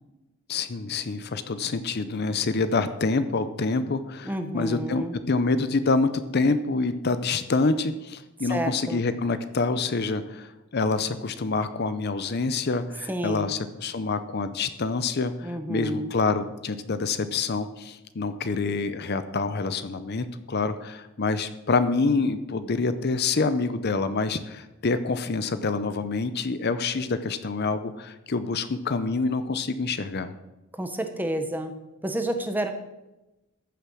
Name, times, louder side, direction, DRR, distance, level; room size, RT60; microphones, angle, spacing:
voice 1, 0.5-30.3, left 3 dB, 45° left, 12 dB, 0.6 m, -27 dB
voice 2, 4.2-5.2 8.5-9.0 13.1-13.5 15.4-16.1 30.8-31.7 32.0-32.7, right 1 dB, 10° right, 7 dB, 1.0 m, -30 dB
14.5 x 6.8 x 6.3 m, 0.99 s
head